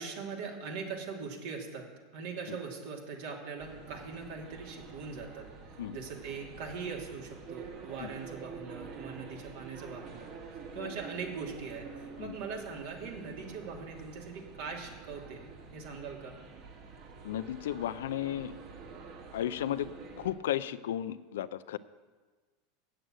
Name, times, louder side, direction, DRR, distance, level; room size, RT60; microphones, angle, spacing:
voice 1, 0.0-1.9 2.1-5.5 5.9-10.3 10.7-15.5 15.7-16.4, right 5 dB, 70° right, 0 dB, 2.6 m, -41 dB
sound 1, 3.6-20.3, right 5 dB, 55° right, 2.4 m, -48 dB
voice 2, 17.2-18.5 19.3-19.9 20.2-21.8, left 11 dB, 85° left, 14 dB, 0.4 m, -34 dB
8.0 x 7.7 x 8.8 m, 1.3 s
supercardioid pair, 125°, 0 cm